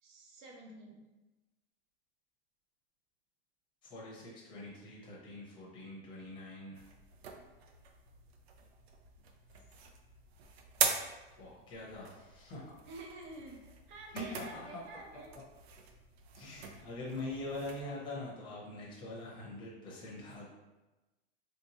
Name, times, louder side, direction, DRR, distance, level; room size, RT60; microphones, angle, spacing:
voice 1, 0.0-1.1 12.9-15.3, right 2 dB, 50° right, 0 dB, 0.8 m, -50 dB
voice 2, 3.8-6.8 11.3-12.7 14.1-14.7 16.4-20.5, left 2 dB, 15° left, -5 dB, 0.7 m, -44 dB
sound 1, 6.7-17.8, right 6 dB, 85° right, 0.6 m, -42 dB
3.3 x 3.0 x 2.8 m, 1.1 s
supercardioid pair, 160°, 30 cm